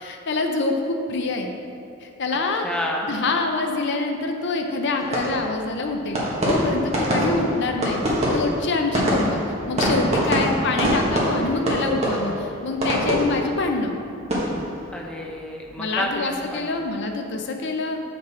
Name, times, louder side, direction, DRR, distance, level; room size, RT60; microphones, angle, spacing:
voice 1, 0.0-1.5 2.0-2.7 3.1-9.4 9.7-14.0 15.8-18.0, left 3 dB, 60° left, 4 dB, 0.6 m, -25 dB
voice 2, 2.6-3.1 6.9-7.5 14.9-16.7 17.0-17.1, equal, 5° left, -1 dB, 0.6 m, -30 dB
sound 1, 5.0-16.1 16.4-16.9, equal, 35° right, 1.4 m, -25 dB
7.7 x 5.3 x 4.1 m, 2.5 s
head